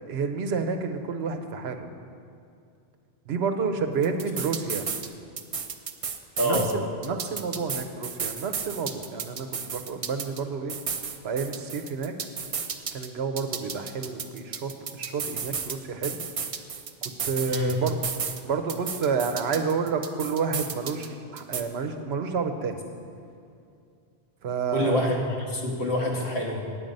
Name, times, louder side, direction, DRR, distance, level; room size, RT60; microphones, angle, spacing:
voice 1, 0.0-1.9 3.3-4.9 6.4-10.8 11.2-12.1 12.9-16.2 17.2-18.0 18.4-22.8 24.4-25.1, right 5 dB, 85° right, 6 dB, 1.0 m, -29 dB
sound 1, 4.0-5.1 5.4-6.7 7.0-10.4 10.7-13.1 13.4-15.8 16.0-18.4 18.7-21.1 21.4-21.6, right 6 dB, 45° right, 0.5 m, -33 dB
voice 2, 24.7-26.6, left 1 dB, 90° left, -1 dB, 1.7 m, -26 dB
8.8 x 8.5 x 5.3 m, 2.5 s
omnidirectional pair, 1.0 m